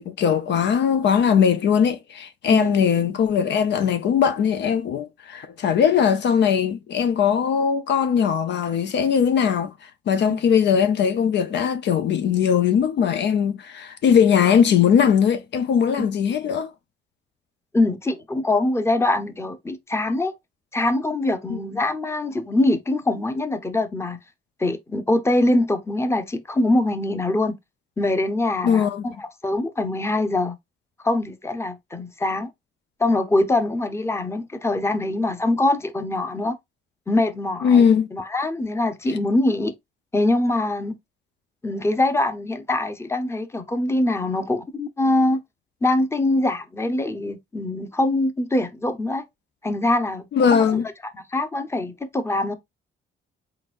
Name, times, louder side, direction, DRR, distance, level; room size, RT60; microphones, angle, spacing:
voice 1, 0.0-16.7 21.5-21.6 28.6-29.1 37.6-38.1 50.3-50.9, left 7 dB, 65° left, 0.6 m, -20 dB
voice 2, 2.5-2.8 16.0-16.1 17.7-20.3 20.7-24.2 24.6-27.6 28.0-30.6 31.0-32.5 33.0-36.6 37.1-37.9 38.1-39.7 40.1-40.9 41.6-45.4 45.8-49.2 49.6-50.8 51.1-52.5, left 2 dB, 15° left, 0.7 m, -23 dB
4.1 x 4.0 x 2.5 m
cardioid pair, 90°, 20 cm